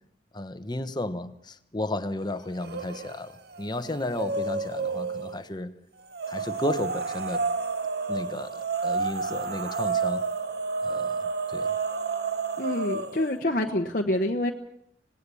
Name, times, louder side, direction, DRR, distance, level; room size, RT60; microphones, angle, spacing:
voice 1, 0.3-5.7 6.3-7.5 8.1-10.2 10.8-11.2 11.5-11.7, left 1 dB, 25° left, 11 dB, 1.1 m, -33 dB
sound 1, 2.6-3.2 3.5-5.4 6.1-13.3, right 4 dB, 60° right, 1.2 m, -30 dB
voice 2, 12.6-14.5, left 1 dB, 50° left, 3 dB, 1.1 m, -26 dB
26.0 x 19.0 x 7.1 m, 0.76 s
head